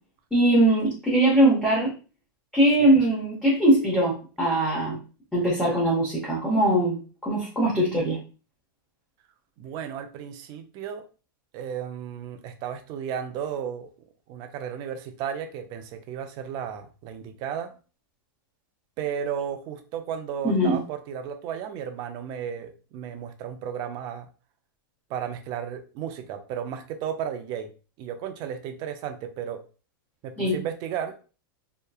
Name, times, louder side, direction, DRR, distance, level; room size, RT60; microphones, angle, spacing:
voice 1, 0.3-1.9 2.5-5.0 5.3-8.2 20.4-20.8 30.4-30.6, right 1 dB, 5° left, -7 dB, 0.8 m, -21 dB
voice 2, 9.6-11.0 11.5-13.9 14.3-17.7 19.0-24.3 25.1-27.7 28.0-29.6 30.2-31.2, right 8 dB, 35° right, 8 dB, 0.4 m, -34 dB
2.7 x 2.2 x 2.3 m, 0.35 s
hypercardioid pair, 135°, 12 cm